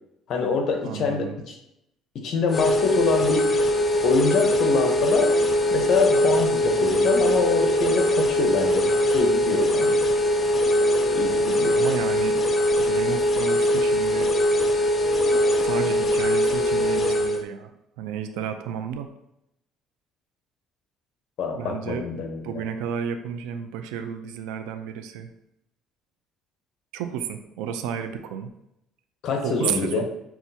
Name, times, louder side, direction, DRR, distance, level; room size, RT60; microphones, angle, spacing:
voice 1, 0.3-1.5 2.2-3.5 4.0-5.3 5.7-10.0 11.1-11.8 21.4-22.6 29.2-30.1, left 4 dB, 55° left, 4 dB, 0.7 m, -25 dB
voice 2, 0.8-1.4 11.8-12.4 12.8-14.3 15.6-17.7 18.0-19.1 21.6-25.3 26.9-28.5 29.4-30.1, right 8 dB, 90° right, 8 dB, 0.3 m, -32 dB
sound 1, 2.5-17.4, equal, 30° left, 0.4 m, -21 dB
5.8 x 2.3 x 2.7 m, 0.82 s
cardioid pair, 115°, 0 cm